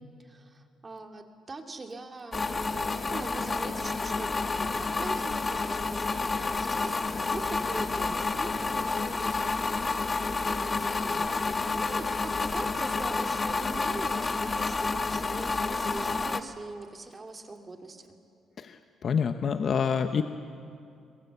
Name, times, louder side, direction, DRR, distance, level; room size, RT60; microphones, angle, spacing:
voice 1, 0.0-9.4 10.4-18.2, right 3 dB, 30° right, 4 dB, 2.3 m, -42 dB
sound 1, 2.3-16.4, left 3 dB, 30° left, 1.2 m, -29 dB
voice 2, 18.6-20.2, left 6 dB, 50° left, 8 dB, 0.9 m, -27 dB
24.0 x 21.5 x 8.1 m, 2.5 s
cardioid pair, 85°, 0 cm